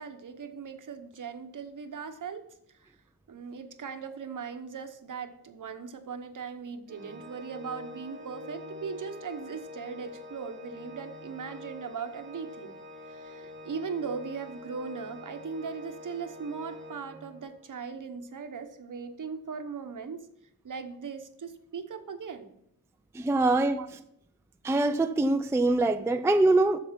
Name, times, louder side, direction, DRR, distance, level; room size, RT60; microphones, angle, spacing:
voice 1, 0.0-2.5 2.8-2.9 3.3-12.8 13.1-20.3 20.6-22.6 23.7-23.9, right 5 dB, 60° right, 0.9 m, -39 dB
Organ, 6.9-17.6, left 2 dB, 30° right, 1.1 m, -46 dB
voice 2, 23.1-23.8 24.6-26.8, right 2 dB, 10° right, 0.3 m, -23 dB
8.0 x 6.8 x 5.8 m
wide cardioid pair, 150°, 36 cm